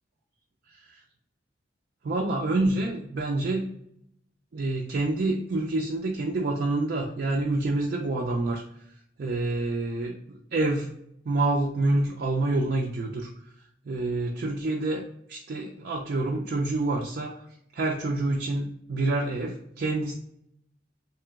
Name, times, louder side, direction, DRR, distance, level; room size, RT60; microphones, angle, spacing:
voice 1, 2.0-3.7 4.5-8.6 9.2-10.9 11.3-13.3 13.9-15.0 15.3-17.4 17.7-20.1, right 2 dB, 55° right, 0 dB, 0.4 m, -27 dB
3.2 x 2.9 x 3.5 m, 0.76 s
head